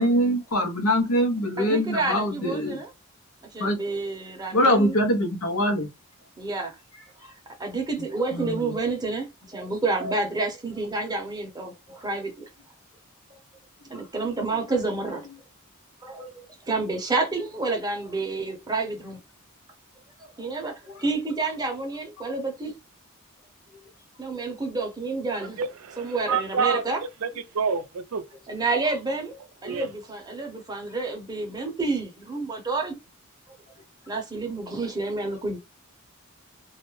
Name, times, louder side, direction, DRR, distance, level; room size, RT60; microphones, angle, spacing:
voice 1, 0.0-2.8 3.6-3.8 4.5-5.9 8.3-8.8 13.9-14.0 20.8-21.0 22.2-22.3, equal, 85° left, 0.8 m, -23 dB
voice 2, 1.6-2.9 3.5-4.9 6.4-6.8 7.6-12.5 13.9-15.3 16.0-16.3 16.7-19.2 20.2-20.7 21.0-22.7 24.2-25.6 26.0-27.0 28.5-33.0 34.1-35.6, right 3 dB, 20° right, 0.7 m, -29 dB
voice 3, 25.6-26.8 27.2-27.3 27.5-28.2 29.6-29.9, right 5 dB, 90° right, 0.5 m, -27 dB
2.4 x 2.1 x 3.0 m
head